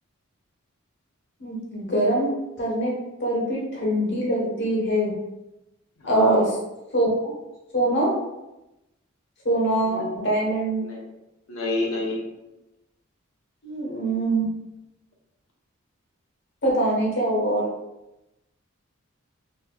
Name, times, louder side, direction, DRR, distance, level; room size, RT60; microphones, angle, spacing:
voice 1, 1.4-2.3 2.6-2.9 3.2-5.1 6.1-6.5 6.9-7.3 7.7-8.2 9.4-10.8 13.6-14.5 16.6-17.6, right 1 dB, 55° left, -4 dB, 1.2 m, -23 dB
voice 2, 6.0-6.4 9.9-10.1 10.8-11.0 11.5-12.2, left 2 dB, 80° left, -1 dB, 0.9 m, -28 dB
4.4 x 2.7 x 2.3 m, 0.95 s
head